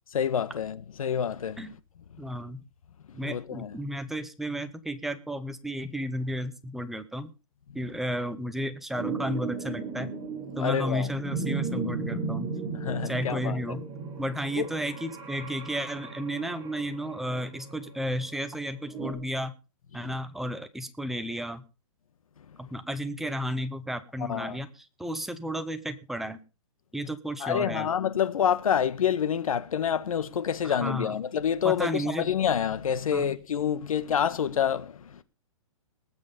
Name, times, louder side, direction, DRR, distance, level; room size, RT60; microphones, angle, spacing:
voice 1, 0.1-1.6 3.2-3.8 10.6-11.1 12.7-13.6 14.6-14.7 19.9-20.1 24.3-24.6 27.4-35.2, left 8 dB, 80° left, 1.6 m, -27 dB
voice 2, 2.2-2.6 3.1-7.3 7.7-10.1 10.6-12.5 13.0-13.8 14.2-19.5 19.9-21.6 22.6-26.4 26.9-27.9 30.6-31.2 31.6-32.3 33.1-33.3, equal, ahead, 0.8 m, -33 dB
sound 1, 8.9-19.1, right 4 dB, 20° right, 3.6 m, -36 dB
19.5 x 7.7 x 5.3 m
hypercardioid pair, 165°, 18 cm